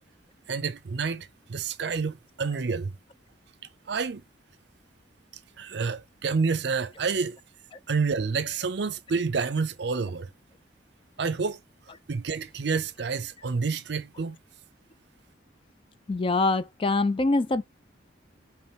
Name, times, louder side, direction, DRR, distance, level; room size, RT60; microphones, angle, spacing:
voice 1, 0.5-2.9 3.9-4.2 5.6-7.4 7.9-10.3 11.2-11.6 12.1-14.4, right 5 dB, 60° right, 0.5 m, -28 dB
voice 2, 16.1-17.6, left 2 dB, 30° left, 0.4 m, -24 dB
4.3 x 3.0 x 3.4 m
head